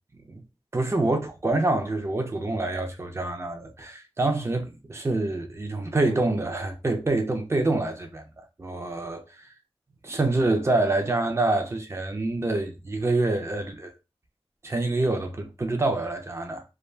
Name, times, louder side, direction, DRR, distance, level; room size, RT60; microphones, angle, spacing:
voice 1, 0.7-9.2 10.0-13.9 14.6-16.6, right 2 dB, 25° right, 0.5 m, -26 dB
2.3 x 2.2 x 3.2 m
wide cardioid pair, 65°, 10 cm